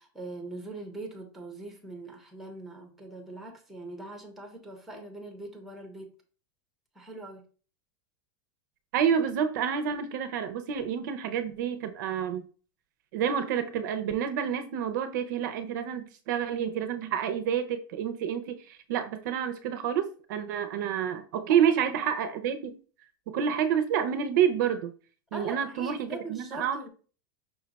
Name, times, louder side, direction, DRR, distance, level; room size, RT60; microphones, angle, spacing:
voice 1, 0.0-6.1 6.9-7.4 21.7-22.4 25.3-26.9, right 2 dB, ahead, 0.7 m, -42 dB
voice 2, 8.9-12.4 13.1-22.7 23.3-24.9 25.3-26.9, right 8 dB, 55° right, 0.5 m, -28 dB
5.5 x 2.2 x 3.9 m
supercardioid pair, 170°, 12 cm